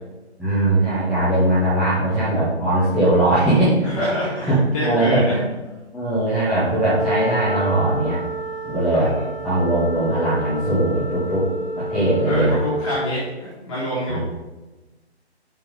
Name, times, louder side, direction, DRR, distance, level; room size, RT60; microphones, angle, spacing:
voice 1, 0.4-4.1 4.4-5.4 5.9-8.2 8.6-9.1 9.4-11.5 11.8-12.6 14.1-14.2, right 1 dB, ahead, -16 dB, 1.3 m, -20 dB
voice 2, 3.8-5.3 8.9-9.3 12.3-14.2, equal, 30° left, -8 dB, 2.3 m, -26 dB
Wind instrument woodwind instrument, 6.7-13.0, right 1 dB, 25° right, 1.4 m, -30 dB
6.6 x 5.4 x 5.2 m, 1.1 s
figure-of-eight pair, 145°, 34 cm